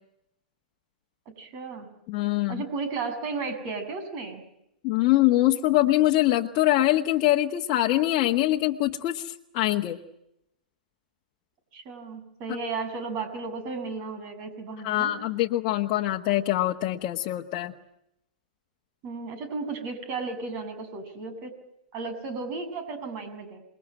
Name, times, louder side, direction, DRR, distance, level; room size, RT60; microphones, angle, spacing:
voice 1, 1.3-1.9 2.5-4.4 11.7-15.2 19.0-21.5 21.9-23.6, right 4 dB, 40° right, 10 dB, 7.0 m, -34 dB
voice 2, 2.1-2.6 4.8-10.0 14.8-17.7, left 15 dB, 45° left, 0 dB, 1.5 m, -24 dB
28.0 x 22.0 x 9.0 m, 0.81 s
hypercardioid pair, 110°, 5 cm